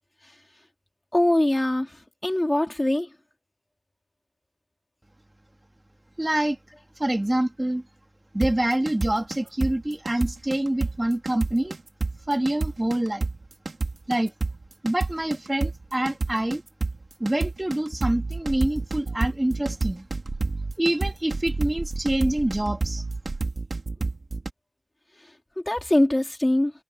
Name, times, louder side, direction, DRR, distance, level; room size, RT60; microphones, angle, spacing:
voice 1, 1.1-1.9 2.2-3.1 25.7-26.7, left 1 dB, 20° left, 4.1 m, -22 dB
voice 2, 6.2-6.6 7.0-7.8 8.3-11.8 12.3-13.3 14.1-14.3 14.8-16.6 17.2-20.1 20.8-23.0, right 1 dB, 20° right, 2.2 m, -26 dB
sound 1, 8.4-24.5, right 3 dB, 50° right, 2.4 m, -29 dB
cardioid pair, 40°, 0 cm